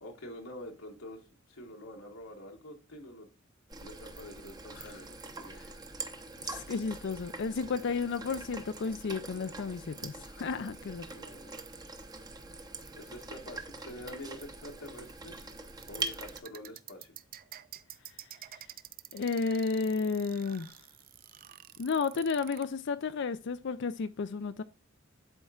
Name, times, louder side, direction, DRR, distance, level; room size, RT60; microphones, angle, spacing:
voice 1, 0.0-3.3 3.8-5.9 11.1-11.7 13.0-15.5 15.9-17.1, left 1 dB, 80° left, 1.4 m, -47 dB
sound 1, 3.7-16.4, right 3 dB, 20° right, 0.8 m, -43 dB
voice 2, 6.5-11.0 19.1-20.7 21.8-24.6, left 5 dB, 55° left, 0.4 m, -32 dB
sound 2, 15.8-22.6, right 12 dB, 45° right, 0.4 m, -48 dB
11.5 x 4.4 x 2.3 m
head